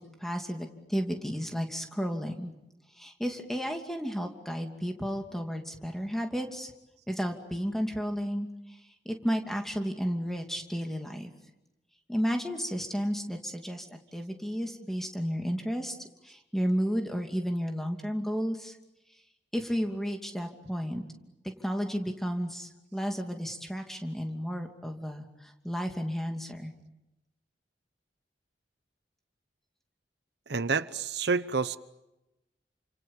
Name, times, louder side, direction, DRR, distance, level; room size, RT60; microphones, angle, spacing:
voice 1, 0.0-2.5 2.9-6.7 7.1-8.8 9.0-11.3 12.1-18.8 19.5-21.0 21.4-26.7, equal, ahead, 4 dB, 2.7 m, -33 dB
voice 2, 30.5-31.8, right 4 dB, 70° right, 14 dB, 0.9 m, -28 dB
30.0 x 27.0 x 7.4 m, 0.94 s
head